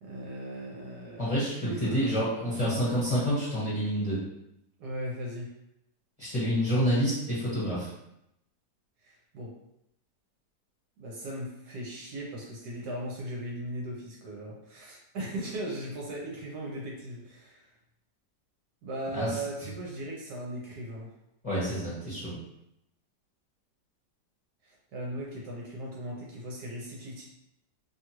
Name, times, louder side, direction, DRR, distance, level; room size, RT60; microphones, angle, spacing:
voice 1, 0.0-2.8 4.8-5.5 9.0-9.5 11.0-17.7 18.8-21.1 24.6-27.2, right 1 dB, 70° right, -3 dB, 1.1 m, -38 dB
voice 2, 1.2-4.2 6.2-7.9 19.1-19.4 21.4-22.4, equal, 25° left, -10 dB, 1.1 m, -28 dB
2.9 x 2.4 x 2.9 m, 0.82 s
omnidirectional pair, 1.9 m